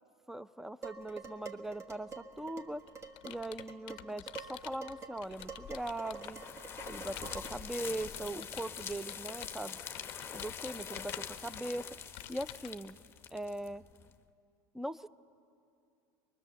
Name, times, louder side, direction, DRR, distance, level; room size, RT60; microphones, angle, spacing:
voice 1, 0.3-2.8 3.2-6.4 6.9-9.8 10.3-11.8 12.3-13.0 13.3-13.8 14.7-15.1, right 1 dB, 5° right, 16 dB, 0.4 m, -40 dB
Dishes pots and pans, 0.8-7.7, right 4 dB, 25° right, 1.7 m, -48 dB
Computer keyboard, 2.4-6.5 7.1-12.8, left 17 dB, 55° left, 0.5 m, -50 dB
sound 1, 5.3-14.1, left 7 dB, 20° left, 0.9 m, -45 dB
23.0 x 21.5 x 7.0 m, 2.5 s
supercardioid pair, 120°, 11 cm